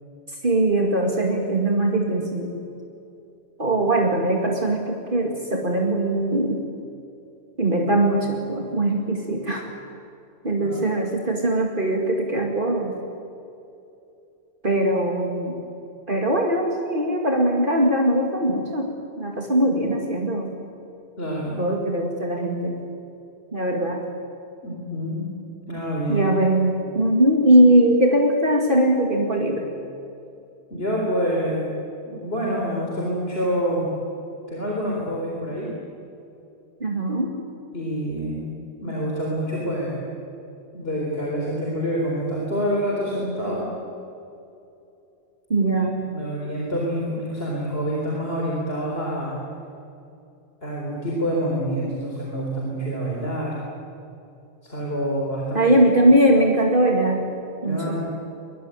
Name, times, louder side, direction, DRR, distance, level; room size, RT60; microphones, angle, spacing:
voice 1, 0.4-2.5 3.6-6.6 7.6-9.7 10.4-13.0 14.6-15.6 16.1-18.9 19.2-20.6 21.6-22.8 23.5-24.0 26.1-29.7 36.8-37.3 45.5-46.1 55.5-57.3 57.6-58.0, right 1 dB, 55° right, 1 dB, 2.5 m, -21 dB
voice 2, 21.2-21.6 24.6-25.3 25.7-26.3 30.7-31.7 32.1-33.9 34.5-35.7 37.7-38.5 38.8-40.0 40.7-43.7 45.8-45.9 46.1-49.4 50.6-53.6 54.6-55.7 57.6-58.0, equal, 65° left, -2 dB, 4.3 m, -27 dB
23.0 x 22.5 x 9.1 m, 2.8 s
omnidirectional pair, 1.1 m